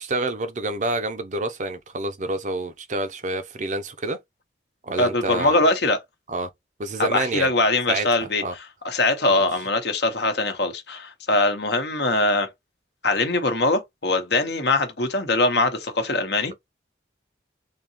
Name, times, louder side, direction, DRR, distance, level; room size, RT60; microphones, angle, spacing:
voice 1, 0.0-4.2 4.8-5.5 6.3-6.5 6.8-7.5 7.9-8.1 8.4-8.5, right 2 dB, 40° right, 0.5 m, -28 dB
voice 2, 5.0-6.0 7.0-12.5 13.0-16.5, left 2 dB, 60° left, 0.9 m, -22 dB
3.6 x 2.8 x 2.8 m
head